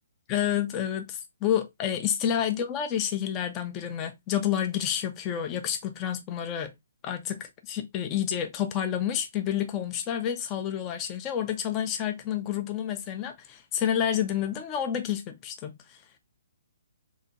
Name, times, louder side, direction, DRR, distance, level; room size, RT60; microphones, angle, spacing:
voice 1, 0.3-6.7 7.0-16.0, left 9 dB, 20° left, 0.3 m, -29 dB
2.8 x 2.5 x 2.5 m
hypercardioid pair, 165°, 0 cm